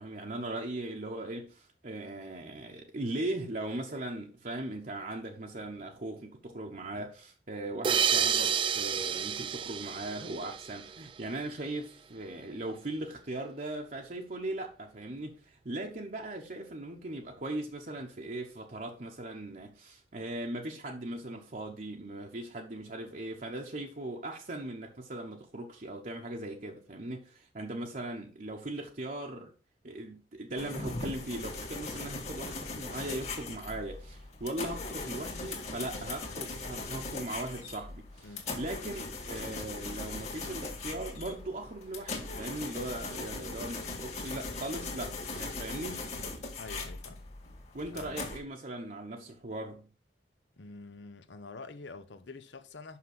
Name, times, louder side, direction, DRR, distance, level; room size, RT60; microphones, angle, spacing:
voice 1, 0.0-29.5 29.8-38.3 38.6-46.0 47.7-49.9, right 1 dB, 50° right, 1.0 m, -39 dB
sound 1, 7.8-11.2, right 8 dB, 30° right, 0.3 m, -30 dB
sound 2, 30.6-48.4, left 3 dB, 40° left, 1.9 m, -39 dB
voice 2, 38.2-38.6 46.6-47.2 47.9-48.3 50.6-53.0, left 3 dB, 85° left, 0.9 m, -47 dB
5.9 x 5.7 x 6.0 m
head